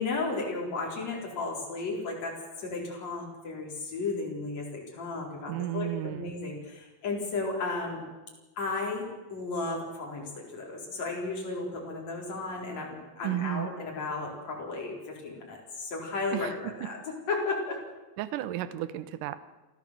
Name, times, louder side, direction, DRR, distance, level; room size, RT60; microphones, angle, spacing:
voice 1, 0.0-8.0 8.6-17.0 17.3-17.8, left 3 dB, 50° left, -1 dB, 5.4 m, -34 dB
voice 2, 5.5-6.3 13.2-13.7 16.3-16.5 18.2-19.4, right 13 dB, 75° right, 13 dB, 2.4 m, -33 dB
28.0 x 13.0 x 7.6 m, 1.1 s
omnidirectional pair, 4.1 m